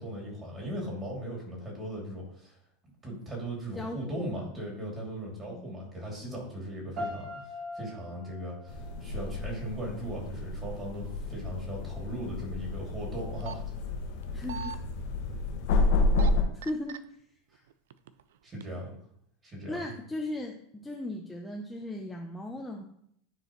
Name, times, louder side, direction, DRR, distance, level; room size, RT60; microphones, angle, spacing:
voice 1, 0.0-2.6 3.0-13.6 16.4-16.5 17.5-17.6 18.4-18.9 19.4-19.9, right 1 dB, 20° right, -1 dB, 2.7 m, -38 dB
voice 2, 3.8-4.5 5.5-5.8 14.3-14.8 16.5-17.0 19.7-22.8, left 1 dB, 5° left, -1 dB, 0.7 m, -37 dB
sound 1, 7.0-10.0, left 1 dB, 35° right, 2.1 m, -42 dB
sound 2, 8.7-16.4, left 2 dB, 65° left, 1.4 m, -30 dB
sound 3, 13.2-13.5 14.2-14.8 15.9-16.3 16.6-17.0 17.7-18.2 18.6-18.7, right 9 dB, 90° right, 0.4 m, -38 dB
10.5 x 4.7 x 3.1 m, 0.69 s
supercardioid pair, 145°, 0 cm